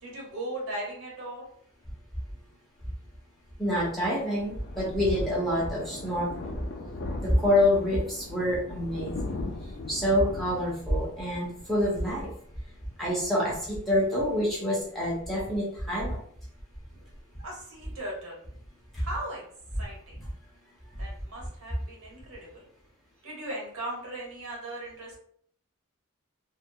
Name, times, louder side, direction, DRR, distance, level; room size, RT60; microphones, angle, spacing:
voice 1, 0.0-1.5 16.9-17.0 17.4-18.4 19.0-19.4 19.8-20.2 21.0-22.5 23.2-25.2, right 1 dB, 75° right, -3 dB, 1.1 m, -38 dB
Thunder, 3.6-13.0 13.4-13.6 13.9-14.0 14.2-14.3, left 2 dB, 50° left, 0.3 m, -40 dB
voice 2, 3.6-6.6 7.2-9.4 9.9-12.3 13.0-16.2 18.9-19.1, left 1 dB, ahead, -7 dB, 0.6 m, -27 dB
2.2 x 2.2 x 2.6 m, 0.63 s
head